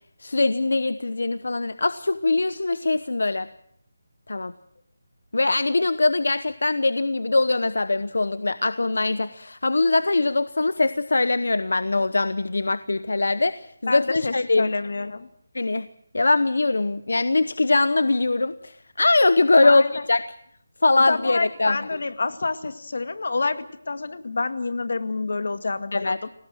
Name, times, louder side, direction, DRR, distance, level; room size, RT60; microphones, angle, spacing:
voice 1, 0.2-3.5 4.3-4.5 5.3-14.7 15.5-15.9 16.1-20.2 20.8-21.8 25.9-26.2, left 2 dB, 80° left, 14 dB, 0.9 m, -22 dB
voice 2, 13.9-15.3 19.6-20.1 21.1-26.3, left 3 dB, 65° left, 9 dB, 1.9 m, -28 dB
29.0 x 18.0 x 6.3 m, 0.68 s
figure-of-eight pair, 170°, 0 cm